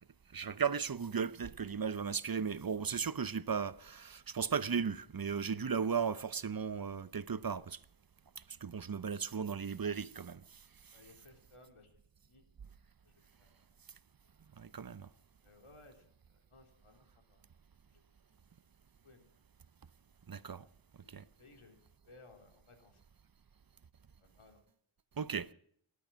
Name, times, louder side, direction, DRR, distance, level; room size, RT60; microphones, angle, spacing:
voice 1, 0.3-7.8 8.4-10.6 14.6-15.1 20.3-20.7 21.1-21.2 25.2-25.5, right 6 dB, 45° right, 0.8 m, -36 dB
voice 2, 10.9-12.4 13.0-13.7 14.2-14.3 15.4-17.4 17.9-18.0 19.0-19.3 20.5-20.7 21.0-23.0 24.2-24.6, left 2 dB, 85° left, 3.5 m, -61 dB
19.0 x 12.0 x 6.3 m
wide cardioid pair, 65°, 49 cm